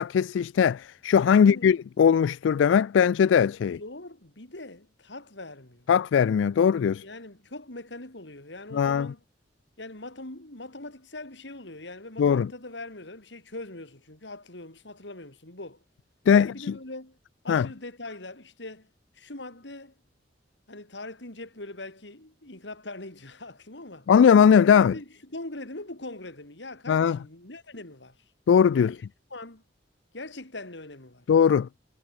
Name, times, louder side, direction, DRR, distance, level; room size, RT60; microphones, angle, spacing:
voice 1, 0.0-3.8 5.9-7.0 8.7-9.1 12.2-12.5 16.3-16.7 17.5-17.7 24.1-24.9 26.9-27.2 28.5-29.0 31.3-31.7, left 7 dB, 85° left, 0.3 m, -20 dB
voice 2, 1.3-1.8 3.6-5.9 7.0-9.2 9.8-15.8 16.3-17.2 17.4-18.9 19.1-20.0 20.7-24.1 24.6-28.2 28.7-29.1 29.3-29.6 30.1-31.3, left 2 dB, 70° left, 3.9 m, -42 dB
head